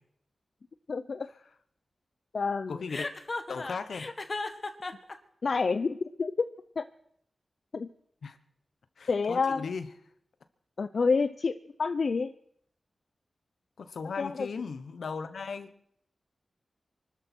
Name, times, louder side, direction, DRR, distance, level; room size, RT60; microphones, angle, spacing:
voice 1, 0.9-1.3 2.3-2.8 5.4-6.5 6.8-6.9 7.7-7.9 9.1-9.7 10.8-11.5 11.8-12.3 14.2-14.5, left 4 dB, 70° left, 11 dB, 0.6 m, -28 dB
voice 2, 2.7-3.1 3.5-4.1 8.2-8.4 9.0-9.9 13.8-15.7, left 5 dB, 85° left, 10 dB, 1.1 m, -37 dB
Chuckle chortle, 2.9-5.1, left 3 dB, 45° left, 1.5 m, -35 dB
24.0 x 13.0 x 4.5 m, 0.68 s
cardioid pair, 55°, 0 cm